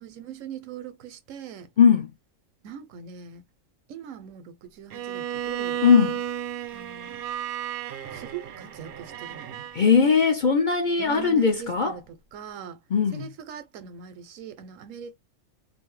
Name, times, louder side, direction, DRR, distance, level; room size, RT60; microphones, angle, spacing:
voice 1, 0.0-1.7 2.6-3.4 3.9-5.8 6.7-7.2 8.1-9.7 11.0-12.8 13.1-15.2, right 8 dB, 85° right, 1.0 m, -41 dB
voice 2, 1.8-2.1 5.8-6.2 9.7-12.0 12.9-13.3, left 6 dB, 55° left, 0.5 m, -19 dB
Bowed string instrument, 4.9-9.8, right 10 dB, 60° right, 0.6 m, -33 dB
2.6 x 2.6 x 3.0 m
omnidirectional pair, 1.3 m